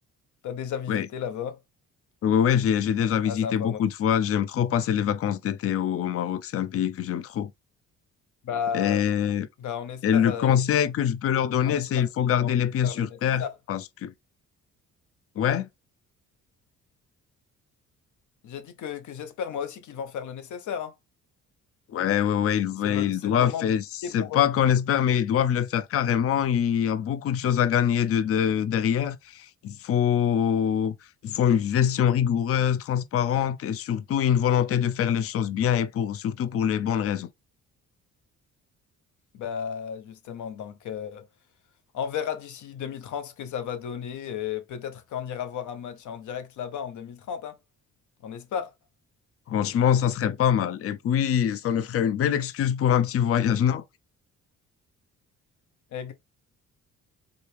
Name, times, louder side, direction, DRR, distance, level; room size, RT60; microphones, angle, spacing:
voice 1, 0.4-1.6 3.2-3.8 8.4-9.0 9.6-10.6 11.6-12.1 12.4-12.5 12.8-13.5 18.4-20.9 22.8-23.7 24.0-24.4 39.3-41.3 41.9-47.6 48.2-48.7 55.9-56.1, left 8 dB, 75° left, 1.0 m, -34 dB
voice 2, 2.2-7.5 8.7-9.5 10.0-13.4 13.7-14.1 15.4-15.7 21.9-23.8 24.1-31.0 31.2-37.3 49.5-53.8, left 9 dB, 50° left, 0.5 m, -24 dB
4.0 x 3.0 x 3.4 m
cardioid pair, 90°, 30 cm